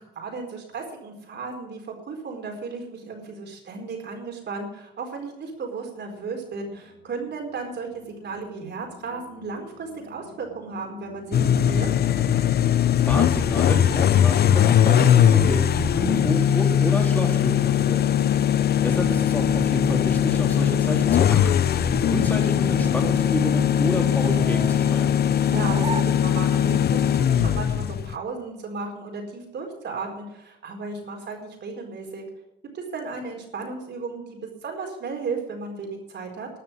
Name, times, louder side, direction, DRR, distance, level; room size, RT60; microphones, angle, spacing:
voice 1, 0.0-11.9 18.2-18.5 25.5-32.2 32.7-36.5, right 4 dB, 60° right, 2 dB, 4.4 m, -34 dB
sound 1, 6.1-21.3, left 6 dB, 85° left, 2.6 m, -45 dB
sound 2, 11.3-28.1, left 9 dB, 55° left, 0.7 m, -20 dB
voice 2, 13.0-18.1 18.5-25.2, equal, 10° left, 1 dB, 3.5 m, -29 dB
sound 3, 22.4-26.9, right 3 dB, 25° right, 1.1 m, -40 dB
13.0 x 6.9 x 9.7 m, 0.84 s
cardioid pair, 90°, 20 cm